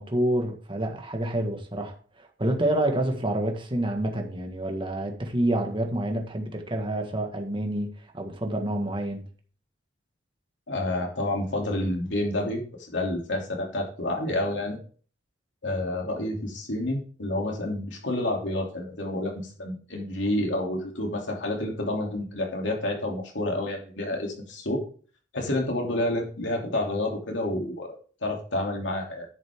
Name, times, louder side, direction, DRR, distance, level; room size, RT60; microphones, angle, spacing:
voice 1, 0.0-7.9 8.1-9.2, right 1 dB, 25° right, 1.7 m, -28 dB
voice 2, 10.7-14.8 15.6-24.8 25.3-27.9 28.2-29.3, left 1 dB, 70° left, 3.0 m, -29 dB
10.5 x 7.7 x 3.7 m
head